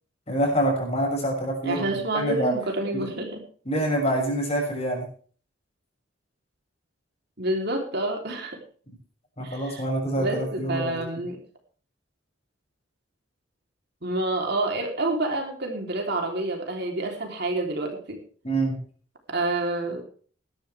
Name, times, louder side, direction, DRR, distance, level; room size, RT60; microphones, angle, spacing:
voice 1, 0.3-2.5 2.9-3.2 3.7-5.1 9.4-11.0 18.4-18.8, right 1 dB, 30° left, 0 dB, 6.3 m, -26 dB
voice 2, 1.6-3.4 7.4-8.6 9.4-9.8 10.2-11.4 14.0-18.2 19.3-20.0, right 2 dB, 55° right, 3 dB, 3.4 m, -28 dB
19.0 x 12.5 x 3.4 m, 0.43 s
head